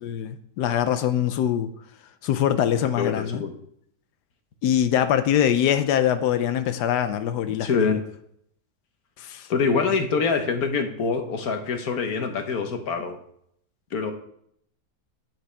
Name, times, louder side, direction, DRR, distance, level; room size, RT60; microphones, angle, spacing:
voice 1, 0.0-1.7 2.2-3.4 4.6-8.0 9.2-9.5, left 10 dB, 85° left, 1.2 m, -23 dB
voice 2, 2.9-3.5 7.5-8.0 9.5-13.2 13.9-14.1, left 5 dB, 65° left, 1.6 m, -25 dB
8.7 x 8.4 x 3.4 m
omnidirectional pair, 1.8 m